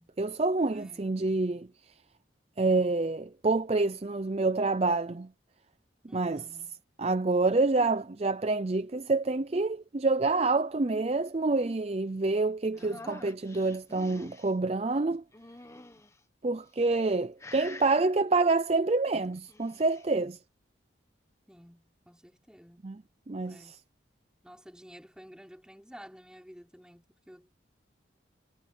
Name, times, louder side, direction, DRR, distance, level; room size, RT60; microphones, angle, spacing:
voice 1, 0.2-1.7 2.6-5.3 6.1-6.4 7.0-15.2 16.4-20.4 22.8-22.9 23.3-23.6, right 3 dB, 30° right, 0.5 m, -27 dB
voice 2, 0.7-1.2 6.1-6.8 12.7-13.2 21.5-22.9 23.4-23.8 24.4-27.6, equal, 5° right, 5.6 m, -52 dB
sound 1, 12.8-14.5 15.3-16.2 16.8-17.1 17.4-18.0 19.3-20.1, left 2 dB, 15° left, 1.1 m, -47 dB
head